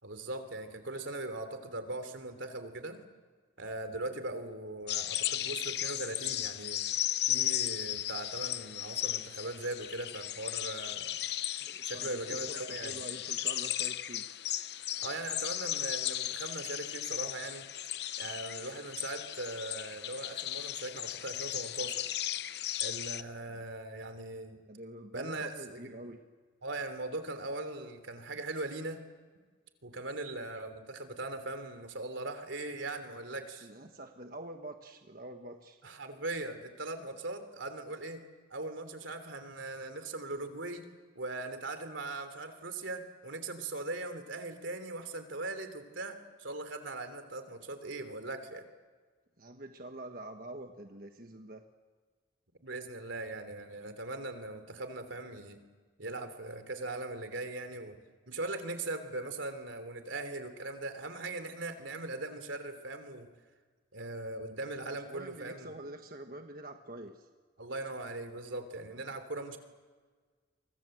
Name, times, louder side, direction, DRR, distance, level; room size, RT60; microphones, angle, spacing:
voice 1, 0.0-3.0 3.6-6.8 7.3-11.1 11.8-13.0 15.0-17.7 18.2-22.0 22.8-24.6 25.1-25.9 26.6-29.0 29.8-33.7 35.8-38.2 38.5-40.8 41.1-48.6 52.6-55.6 56.0-58.0 58.3-63.3 63.9-65.7 67.6-69.6, right 2 dB, 85° right, 9 dB, 3.1 m, -40 dB
sound 1, 4.9-23.2, left 12 dB, 60° left, 0.7 m, -36 dB
voice 2, 11.6-14.3 23.5-23.6 24.7-26.2 33.6-35.8 49.4-51.6 65.1-67.3, right 1 dB, 50° right, 5 dB, 1.4 m, -46 dB
30.0 x 24.5 x 7.9 m, 1.5 s
head